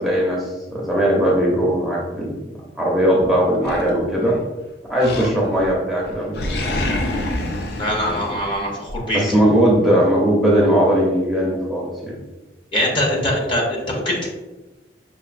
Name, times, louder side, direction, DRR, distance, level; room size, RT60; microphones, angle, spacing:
voice 1, 0.0-4.4 4.9-6.9 8.0-8.2 9.1-12.2, equal, ahead, -5 dB, 0.7 m, -19 dB
Animal, 3.6-4.5 5.0-5.7 6.0-9.0, left 1 dB, 65° left, 0.5 m, -27 dB
voice 2, 7.7-9.2 12.7-14.3, equal, 30° left, -2 dB, 0.8 m, -22 dB
5.7 x 2.6 x 2.5 m, 1.1 s
head